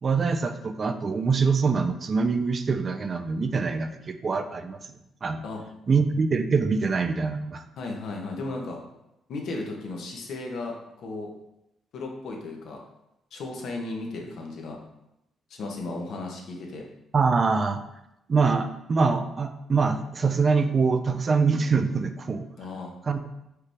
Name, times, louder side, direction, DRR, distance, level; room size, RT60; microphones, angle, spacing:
voice 1, 0.0-4.8 5.2-5.4 5.9-7.6 17.1-17.8 18.3-22.4 23.1-23.4, right 4 dB, 40° right, 8 dB, 0.4 m, -24 dB
voice 2, 7.8-8.8 9.3-11.3 11.9-12.8 13.3-14.8 15.5-16.9 22.6-22.9, left 2 dB, 70° left, 1 dB, 0.9 m, -35 dB
4.8 x 3.1 x 3.4 m, 0.86 s
cardioid pair, 90°, 0 cm